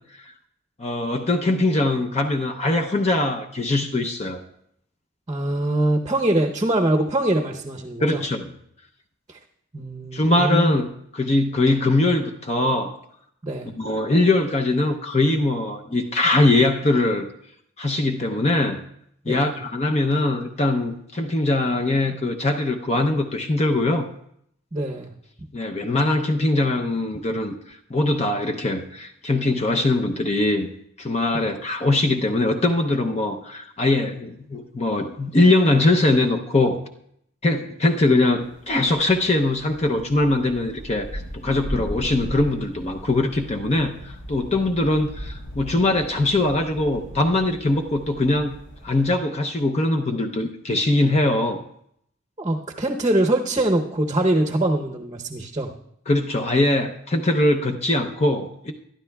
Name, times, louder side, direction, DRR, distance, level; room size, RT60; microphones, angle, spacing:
voice 1, 0.8-4.4 8.0-8.5 10.1-13.0 13.8-17.3 17.8-18.8 19.3-24.1 25.5-30.7 31.0-36.8 37.4-48.6 48.8-51.6 56.1-58.7, left 2 dB, 30° left, 4 dB, 0.6 m, -22 dB
voice 2, 5.3-8.2 9.3-9.4 9.7-10.7 13.4-13.7 19.3-19.6 24.7-25.1 31.3-31.4 52.4-55.7, right 1 dB, 25° right, 2 dB, 0.7 m, -23 dB
sound 1, 38.4-49.2, equal, 85° left, 4.1 m, -38 dB
23.0 x 11.5 x 2.3 m, 0.72 s
head